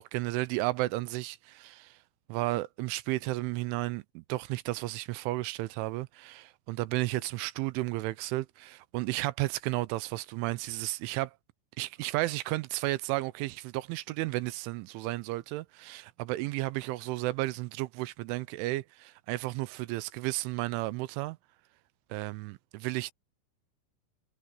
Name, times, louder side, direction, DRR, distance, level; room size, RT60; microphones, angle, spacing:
voice 1, 0.0-2.0 2.3-11.3 11.8-21.4 22.1-23.1, right 19 dB, 85° right, 3.0 m, -33 dB
omnidirectional pair, 5.7 m